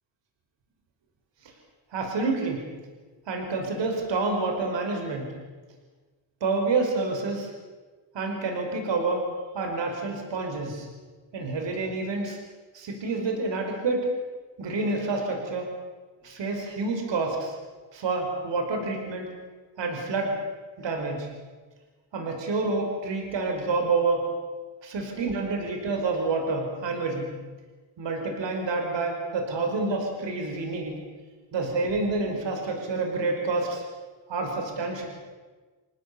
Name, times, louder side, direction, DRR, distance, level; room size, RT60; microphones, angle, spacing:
voice 1, 1.9-2.7 3.3-5.4 6.4-7.5 8.1-10.9 11.3-12.4 12.7-14.1 14.6-15.7 16.2-17.6 17.9-19.3 19.8-20.4 20.8-21.3 22.1-24.3 24.8-27.3 28.0-31.0 31.5-33.8 34.3-35.1, right 3 dB, 70° right, 3 dB, 5.2 m, -28 dB
27.5 x 18.5 x 8.5 m, 1.4 s
cardioid pair, 125°, 46 cm